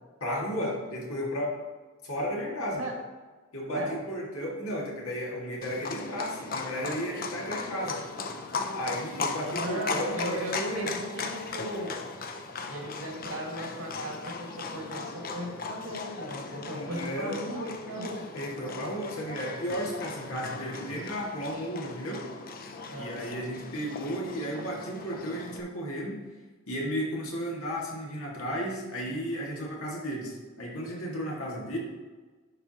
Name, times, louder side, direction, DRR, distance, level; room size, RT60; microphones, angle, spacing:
voice 1, 0.2-1.6 2.0-2.8 3.5-8.0 8.7-10.9 16.7-17.4 18.3-22.2 22.9-26.2 26.7-31.8, equal, 85° left, -3 dB, 2.0 m, -34 dB
Livestock farm animals working animals, 5.6-25.6, left 4 dB, 40° left, 0.5 m, -38 dB
voice 2, 9.5-12.0 12.7-18.2 22.9-23.2, right 1 dB, 90° right, -1 dB, 1.8 m, -37 dB
11.5 x 4.6 x 2.9 m, 1.3 s
head